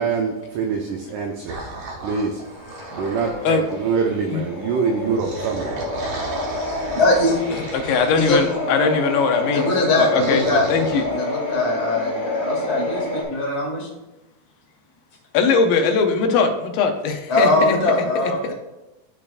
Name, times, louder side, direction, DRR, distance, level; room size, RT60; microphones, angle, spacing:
voice 1, 0.0-2.5 2.9-6.3, right 5 dB, 80° right, 3 dB, 1.9 m, -25 dB
sound 1, 1.5-3.8 4.9-8.5 10.1-11.0, right 2 dB, 65° right, 1.6 m, -35 dB
sound 2, 2.4-13.2, left 2 dB, 25° left, 1.5 m, -28 dB
voice 2, 6.5-7.4 8.1-8.4 9.5-10.6 11.0-13.9 17.3-18.5, left 2 dB, 40° left, -3 dB, 0.9 m, -21 dB
voice 3, 7.5-11.0 15.3-17.8, left 5 dB, 85° left, 6 dB, 2.4 m, -21 dB
12.0 x 4.3 x 2.4 m, 1.0 s
omnidirectional pair, 4.1 m